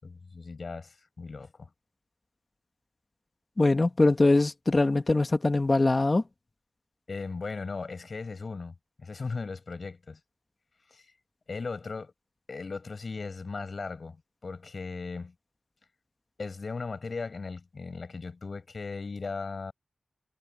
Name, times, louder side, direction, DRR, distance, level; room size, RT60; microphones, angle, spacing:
voice 1, 0.0-1.7 7.1-10.2 10.9-11.0 11.5-12.1 12.5-14.2 14.4-15.3 16.4-19.7, left 4 dB, 65° left, 6.9 m, -37 dB
voice 2, 3.6-6.2, left 2 dB, 35° left, 1.9 m, -22 dB
wide cardioid pair, 90°, 0 cm